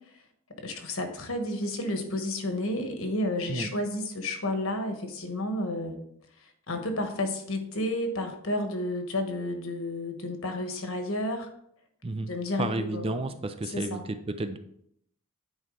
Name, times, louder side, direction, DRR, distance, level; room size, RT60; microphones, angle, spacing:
voice 1, 0.6-6.0 6.7-11.5 12.2-13.3 13.7-14.0, left 1 dB, 65° left, 5 dB, 1.3 m, -31 dB
voice 2, 12.6-14.6, right 2 dB, 25° right, 9 dB, 0.4 m, -32 dB
9.8 x 4.6 x 3.8 m, 0.70 s
head